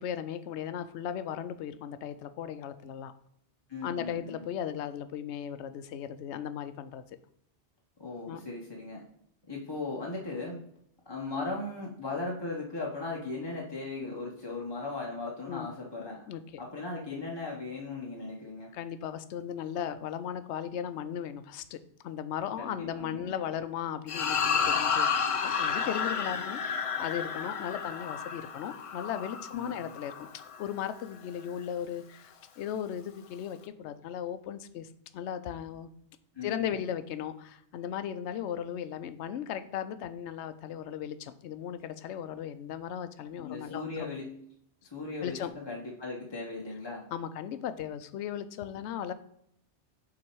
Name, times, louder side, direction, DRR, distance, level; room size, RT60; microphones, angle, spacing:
voice 1, 0.0-3.1 3.8-7.0 8.3-8.4 15.5-15.7 16.3-16.6 18.7-21.8 22.0-25.1 25.4-34.9 35.1-35.9 36.4-44.1 45.2-45.5 47.1-49.1, left 9 dB, 80° left, 11 dB, 0.8 m, -37 dB
voice 2, 3.7-4.4 8.0-9.0 9.5-10.6 11.1-16.2 16.6-18.7 22.6-23.4 29.5-29.9 36.3-36.8 43.4-44.3 44.8-47.0, left 3 dB, 25° left, -3 dB, 0.8 m, -37 dB
sound 1, 24.1-30.6, left 6 dB, 50° left, 0.4 m, -31 dB
6.1 x 4.0 x 4.5 m, 0.72 s
omnidirectional pair, 1.2 m